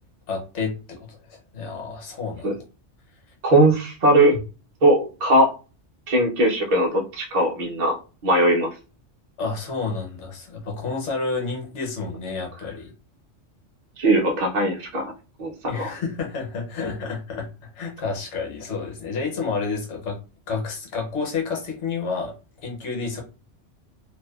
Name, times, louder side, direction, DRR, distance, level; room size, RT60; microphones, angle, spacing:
voice 1, 0.3-2.6 4.3-4.4 9.4-12.9 15.7-17.5 17.7-20.2 20.5-22.3 22.6-23.2, left 4 dB, 70° left, 0 dB, 1.1 m, -30 dB
voice 2, 3.4-4.3 4.8-5.5 6.1-8.0 8.2-8.7 14.0-15.1 15.4-15.9, right 1 dB, 45° right, -2 dB, 0.6 m, -19 dB
2.6 x 2.2 x 2.3 m, 0.33 s
omnidirectional pair, 1.3 m